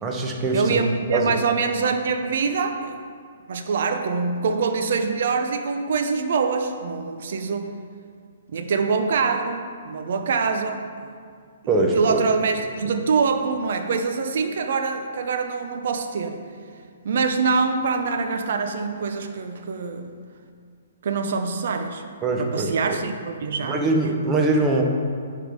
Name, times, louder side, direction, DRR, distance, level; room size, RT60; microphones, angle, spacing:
voice 1, 0.0-0.8 1.1-1.4 11.7-12.2 22.2-23.0 23.6-24.8, right 2 dB, 15° right, 1 dB, 0.8 m, -22 dB
voice 2, 0.5-2.9 3.5-7.7 8.5-11.1 11.9-16.4 17.0-20.1 21.0-22.0 22.4-23.9 24.2-24.3, right 5 dB, 60° right, 6 dB, 0.6 m, -24 dB
10.0 x 3.7 x 5.1 m, 2.1 s
hypercardioid pair, 155°, 0 cm